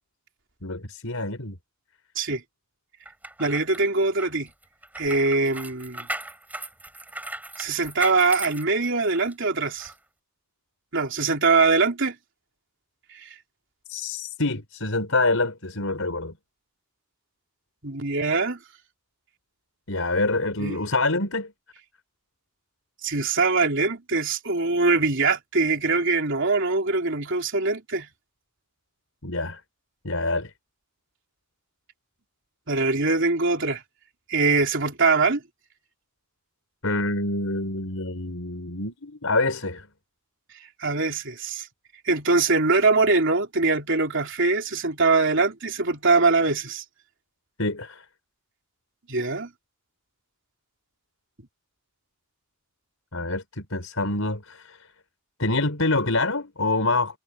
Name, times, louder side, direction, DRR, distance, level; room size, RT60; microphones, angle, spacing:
voice 1, 0.6-1.6 13.9-16.3 19.9-21.5 29.2-29.6 30.0-30.5 36.8-39.9 47.6-48.1 53.1-54.8 55.4-57.2, left 2 dB, 75° left, 5.3 m, -26 dB
sound 1, 3.1-9.3 9.8-9.9, right 2 dB, 10° right, 6.0 m, -37 dB
voice 2, 3.4-4.5 5.0-6.1 7.6-9.9 10.9-12.2 13.1-13.3 17.8-18.6 20.6-20.8 23.0-28.1 32.7-33.8 34.3-35.4 40.8-41.7 42.1-46.8 49.1-49.5, right 3 dB, 60° right, 3.7 m, -22 dB
head